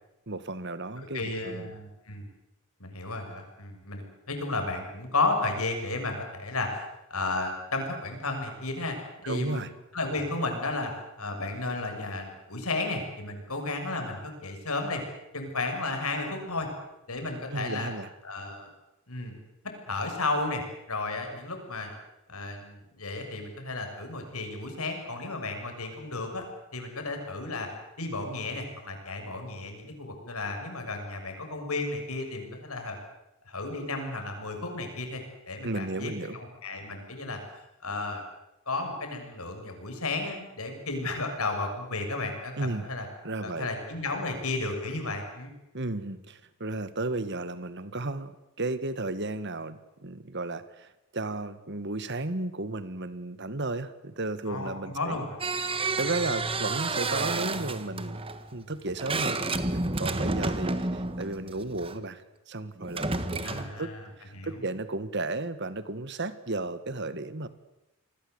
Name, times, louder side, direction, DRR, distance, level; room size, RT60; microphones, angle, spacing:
voice 1, 0.3-1.7 9.2-9.7 17.5-18.1 35.6-36.4 42.6-42.9 43.2-43.7 45.7-55.2 56.0-58.2 58.5-63.9 64.2-67.5, right 2 dB, 50° right, 13 dB, 1.7 m, -34 dB
voice 2, 1.1-2.3 2.8-9.0 9.2-10.9 11.2-15.0 15.3-16.7 17.1-17.9 18.2-18.7 19.1-19.4 19.8-20.6 20.9-21.9 22.3-26.4 26.7-27.7 28.0-33.0 33.4-38.2 38.7-43.1 43.4-45.5 54.5-55.4 60.7-60.8 63.4-64.0 64.3-64.7, left 2 dB, 75° left, 4 dB, 6.8 m, -33 dB
sound 1, 55.4-62.0 62.8-63.8, right 3 dB, 25° right, 1.4 m, -31 dB
28.0 x 21.0 x 8.2 m, 0.91 s
head